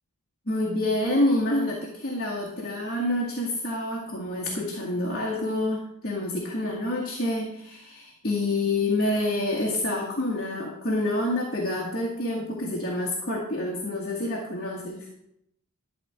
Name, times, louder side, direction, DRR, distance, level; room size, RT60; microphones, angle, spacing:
voice 1, 0.5-15.1, left 1 dB, 45° left, -2 dB, 1.7 m, -27 dB
12.5 x 4.3 x 7.8 m, 0.77 s
head